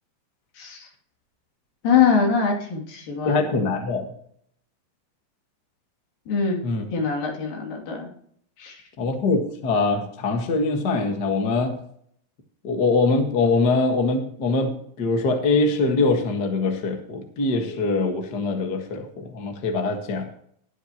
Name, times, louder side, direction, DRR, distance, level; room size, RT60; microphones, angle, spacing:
voice 1, 0.5-0.9 1.8-3.4 6.3-6.6 6.9-8.1 8.6-8.8, left 6 dB, 65° left, 0 dB, 4.3 m, -23 dB
voice 2, 3.2-4.1 6.6-6.8 9.0-11.8 12.6-20.3, left 3 dB, 45° left, 3 dB, 1.3 m, -23 dB
19.5 x 8.3 x 3.0 m, 0.64 s
omnidirectional pair, 4.4 m